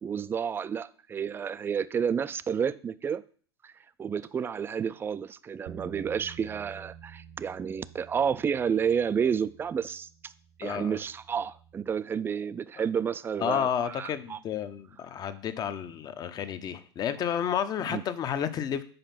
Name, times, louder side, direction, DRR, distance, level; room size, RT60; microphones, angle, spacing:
voice 1, 0.0-3.2 3.6-3.7 4.0-10.3 10.6-14.4 17.9-18.0, right 7 dB, 15° right, 0.3 m, -30 dB
sound 1, 5.7-11.9, right 8 dB, 60° right, 0.9 m, -50 dB
voice 2, 10.6-11.0 13.4-18.8, left 8 dB, 30° left, 0.7 m, -31 dB
5.2 x 5.0 x 5.7 m
hypercardioid pair, 95°, 13 cm